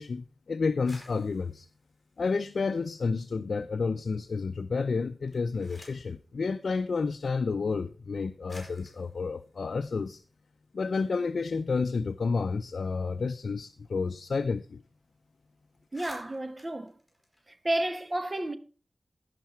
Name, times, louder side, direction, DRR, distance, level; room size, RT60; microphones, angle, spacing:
voice 1, 0.0-1.7 2.2-10.2 10.7-14.8, left 4 dB, 75° left, 0.5 m, -30 dB
sound 1, 0.7-3.3 3.6-4.3 5.1-6.2 7.2-7.3 8.1-8.2 8.5-10.8 11.2-11.3 11.5-14.1 14.4-14.5 14.8-15.0 15.4-15.5 15.7-18.0, left 1 dB, 15° left, 5.1 m, -55 dB
voice 2, 15.9-17.0 17.5-18.6, right 1 dB, 30° right, 1.0 m, -31 dB
16.0 x 5.8 x 4.4 m
wide cardioid pair, 85°, 0 cm